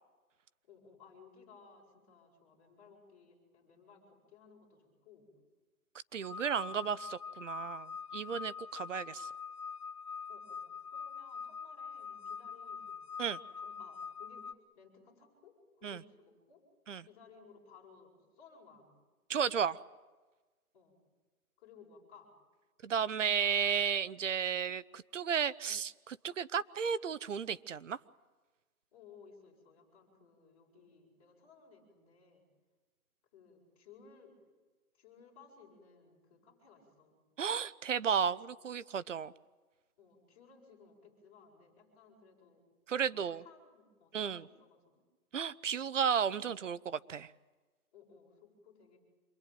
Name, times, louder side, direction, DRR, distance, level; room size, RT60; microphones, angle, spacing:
voice 1, 0.6-5.3 10.3-12.9 13.6-16.6 17.0-18.9 20.7-21.0 21.6-22.3 28.9-32.4 33.3-34.4 34.9-37.2 40.0-42.6 43.1-44.8 47.9-49.0, left 5 dB, 25° left, -2 dB, 7.5 m, -59 dB
voice 2, 6.1-9.3 13.2-13.4 15.8-16.0 16.9-17.0 19.3-19.8 22.8-28.0 37.4-39.3 42.9-43.4 44.1-44.4 45.3-47.3, right 7 dB, 55° right, 16 dB, 0.8 m, -33 dB
sound 1, 6.2-14.5, left 6 dB, 75° left, 1.8 m, -44 dB
27.0 x 22.5 x 9.2 m, 1.3 s
hypercardioid pair, 175°, 44 cm